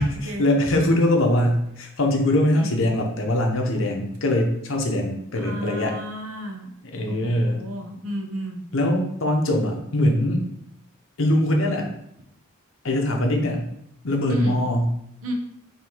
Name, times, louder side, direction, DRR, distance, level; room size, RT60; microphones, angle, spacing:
voice 1, 0.0-6.0 6.8-7.6 8.7-10.4 11.2-11.9 12.8-13.7 14.0-14.9, left 1 dB, 65° left, 2 dB, 0.8 m, -22 dB
voice 2, 5.3-6.7 7.1-8.6 14.3-14.6 15.2-15.3, equal, 75° right, 3 dB, 0.8 m, -32 dB
3.7 x 2.8 x 4.5 m, 0.75 s
head